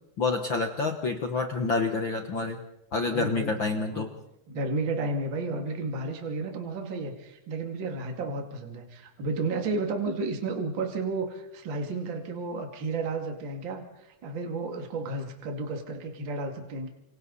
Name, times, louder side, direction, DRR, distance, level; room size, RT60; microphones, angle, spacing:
voice 1, 0.2-2.6 2.9-4.1, left 3 dB, 60° left, 5 dB, 1.2 m, -28 dB
voice 2, 3.1-3.5 3.9-4.1 4.5-13.8 14.2-16.9, right 3 dB, 35° right, 3 dB, 2.7 m, -32 dB
30.0 x 27.0 x 4.2 m, 0.87 s
omnidirectional pair, 4.2 m